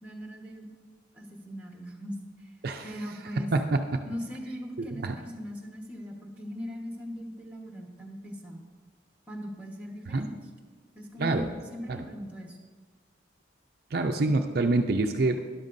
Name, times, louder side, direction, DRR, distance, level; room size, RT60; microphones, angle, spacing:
voice 1, 0.0-0.7 1.1-2.5 2.8-3.5 4.0-8.6 9.3-10.3 10.9-12.6, equal, 10° right, 1 dB, 1.2 m, -40 dB
voice 2, 13.9-15.4, right 2 dB, 55° right, 4 dB, 0.5 m, -26 dB
12.5 x 11.5 x 2.6 m, 1.5 s
head